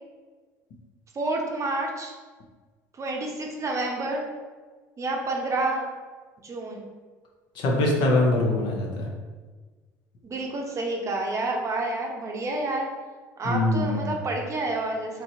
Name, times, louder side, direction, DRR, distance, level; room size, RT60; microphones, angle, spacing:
voice 1, 1.1-2.1 3.0-4.2 5.0-5.8 6.4-6.8 10.2-12.9 13.4-15.2, right 2 dB, 35° right, 1 dB, 0.7 m, -29 dB
voice 2, 7.6-9.1 13.4-14.1, left 2 dB, 55° left, 0 dB, 0.7 m, -23 dB
3.0 x 2.8 x 2.7 m, 1.4 s
hypercardioid pair, 65°, 9 cm